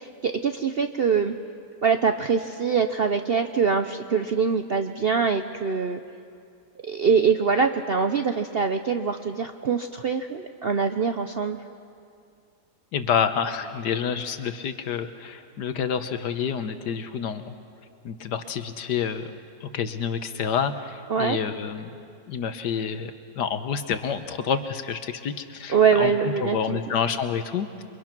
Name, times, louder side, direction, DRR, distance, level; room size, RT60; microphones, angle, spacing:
voice 1, 0.0-1.3 1.8-6.0 6.8-11.6 21.1-21.4 25.7-26.8, right 6 dB, 60° right, 7 dB, 0.6 m, -23 dB
voice 2, 12.9-17.5 18.0-19.3 19.6-21.9 22.3-27.8, left 7 dB, 80° left, 10 dB, 1.6 m, -28 dB
28.0 x 23.5 x 6.0 m, 2.4 s
omnidirectional pair, 1.8 m